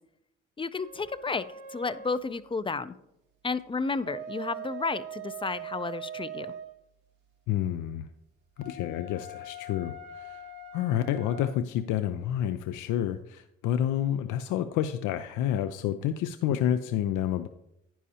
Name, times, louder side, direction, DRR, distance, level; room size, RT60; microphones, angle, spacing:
voice 1, 0.6-1.5 1.7-2.9 3.4-6.6, left 4 dB, 20° left, 14 dB, 0.3 m, -32 dB
sound 1, 0.8-2.3 3.9-6.7 8.6-11.6, right 4 dB, 80° right, 1.3 m, -42 dB
voice 2, 7.5-8.1 8.6-10.4 10.7-17.5, left 10 dB, 90° left, 10 dB, 0.5 m, -29 dB
10.0 x 9.8 x 2.8 m, 0.84 s
cardioid pair, 90°, 30 cm